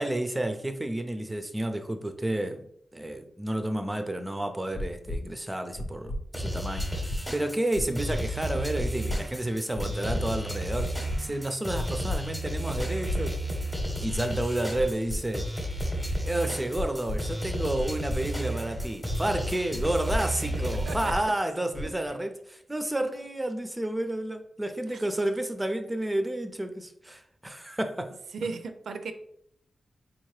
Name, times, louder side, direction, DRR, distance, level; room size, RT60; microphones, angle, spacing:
voice 1, 0.0-2.7 2.9-13.3 14.0-15.5 16.2-28.1, right 1 dB, 10° right, 6 dB, 0.4 m, -31 dB
sound 1, 4.7-5.2 5.7-6.2 6.7-7.2 7.7-8.2 8.7-9.2 9.7-10.2 10.7-11.2 11.7-12.2 12.7-13.2 13.7-14.2 14.7-15.2 15.7-16.2 16.7-17.2 17.7-18.2 18.7-19.2 19.7-20.2 20.7-21.2 21.7-22.1, left 1 dB, 65° left, 0.7 m, -32 dB
sound 2, 6.3-21.1, right 1 dB, 10° left, 0.8 m, -33 dB
voice 2, 20.8-21.2 24.9-25.1 28.3-29.1, right 4 dB, 80° right, 8 dB, 0.4 m, -36 dB
4.0 x 2.7 x 3.1 m, 0.68 s
wide cardioid pair, 130°, 0 cm